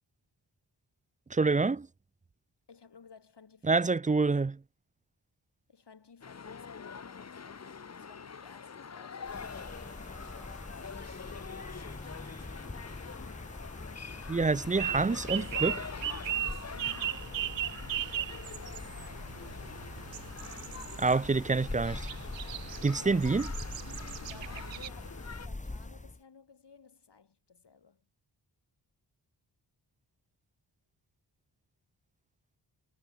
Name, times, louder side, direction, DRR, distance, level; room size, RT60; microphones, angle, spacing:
voice 1, 1.3-1.9 3.6-4.6 14.3-15.9 21.0-22.1 22.8-23.5, right 4 dB, 20° right, 0.4 m, -27 dB
voice 2, 2.7-3.9 5.7-11.6 16.2-17.4 22.5-23.6 24.2-28.0, left 5 dB, 65° left, 4.9 m, -57 dB
sound 1, 6.2-25.5, left 6 dB, 35° left, 0.8 m, -46 dB
sound 2, 9.2-26.2, left 2 dB, 15° left, 1.6 m, -43 dB
sound 3, 14.8-24.9, right 12 dB, 85° right, 0.6 m, -38 dB
wide cardioid pair, 90°, 44 cm